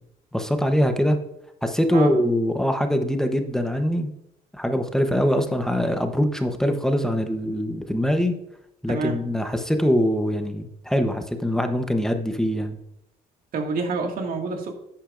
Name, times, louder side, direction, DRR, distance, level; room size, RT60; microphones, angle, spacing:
voice 1, 0.3-1.2 1.6-4.1 4.5-8.4 8.8-12.8, equal, 5° left, 6 dB, 0.9 m, -23 dB
voice 2, 13.5-14.7, right 3 dB, 60° right, 3 dB, 2.0 m, -27 dB
11.0 x 8.6 x 2.5 m, 0.80 s
cardioid pair, 110°, 17 cm